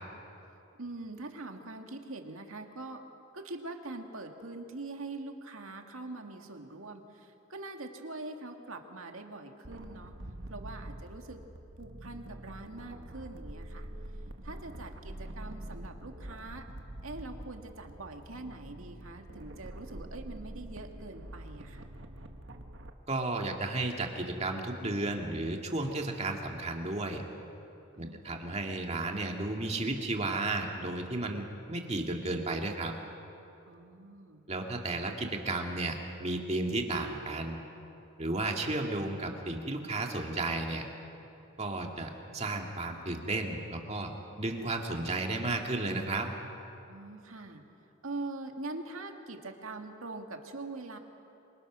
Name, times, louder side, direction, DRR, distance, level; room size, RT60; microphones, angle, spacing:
voice 1, 0.8-3.0 3.3-10.1 10.5-11.4 11.8-13.9 14.4-16.7 17.0-21.9 27.9-28.6 33.7-34.4 46.9-47.6 48.0-51.0, right 2 dB, 75° right, 4 dB, 2.1 m, -43 dB
sound 1, 9.6-22.9, right 1 dB, 60° right, 1.4 m, -45 dB
voice 2, 23.1-27.2 28.0-32.9 34.5-37.6 38.2-40.9 41.6-44.1 44.4-46.3, right 2 dB, 30° right, 2 dB, 2.1 m, -33 dB
27.5 x 24.0 x 6.2 m, 2.9 s
head